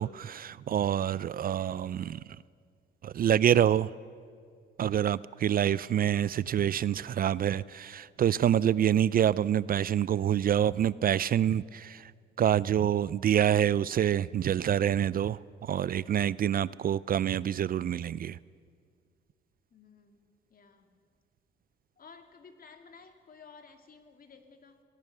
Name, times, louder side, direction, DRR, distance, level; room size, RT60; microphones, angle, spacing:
voice 1, 0.0-2.2 3.0-3.9 4.8-12.1 12.4-18.4, right 10 dB, 50° right, 0.4 m, -27 dB
voice 2, 19.7-20.2 20.5-21.0 22.0-24.8, left 5 dB, 45° left, 2.4 m, -54 dB
23.0 x 18.0 x 6.7 m
cardioid pair, 90°, 20 cm